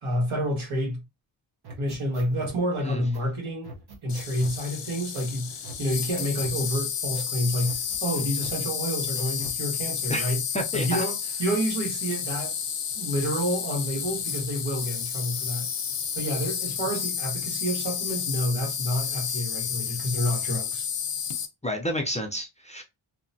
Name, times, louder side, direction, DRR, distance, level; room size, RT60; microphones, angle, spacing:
voice 1, 0.0-1.0 1.8-3.7 4.0-10.4 10.7-11.1 11.4-12.6 12.9-15.7 16.1-20.9, equal, 75° right, 1.5 m, -29 dB
sound 1, 1.6-2.6 3.1-3.2 3.6-4.6 5.1-5.3 5.6-6.6 7.1-7.3 7.6-8.6 9.1-9.6, right 2 dB, 50° right, 0.8 m, -43 dB
Insect, 4.1-21.5, left 7 dB, 60° left, 0.7 m, -31 dB
voice 2, 10.1-11.0 21.6-22.8, left 1 dB, 15° left, 0.5 m, -30 dB
2.9 x 2.1 x 2.6 m
wide cardioid pair, 85°, 49 cm